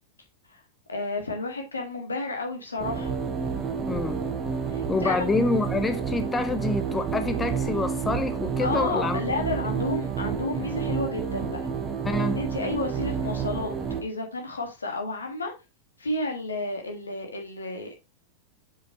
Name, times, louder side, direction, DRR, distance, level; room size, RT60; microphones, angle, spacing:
voice 1, 0.9-3.1 4.7-5.3 8.6-11.6 12.3-13.7 14.0-15.5 16.0-18.0, left 2 dB, 75° left, 1.6 m, -31 dB
sound 1, 2.8-14.0, right 6 dB, 20° right, 1.3 m, -29 dB
voice 2, 3.9-4.2 4.9-9.2 12.0-12.4, left 3 dB, 15° left, 0.6 m, -27 dB
6.9 x 5.0 x 2.8 m
figure-of-eight pair, 90°, 0 cm